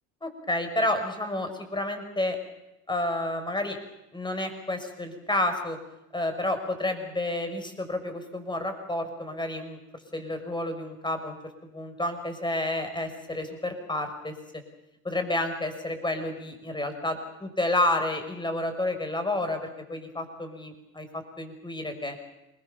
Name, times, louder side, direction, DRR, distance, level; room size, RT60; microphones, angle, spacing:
voice 1, 0.2-2.4 2.9-3.8 4.1-5.8 6.1-9.8 10.1-11.4 11.7-14.3 15.0-22.2, left 1 dB, 10° left, 6 dB, 6.3 m, -30 dB
27.5 x 21.5 x 7.2 m, 0.91 s
supercardioid pair, 90°, 38 cm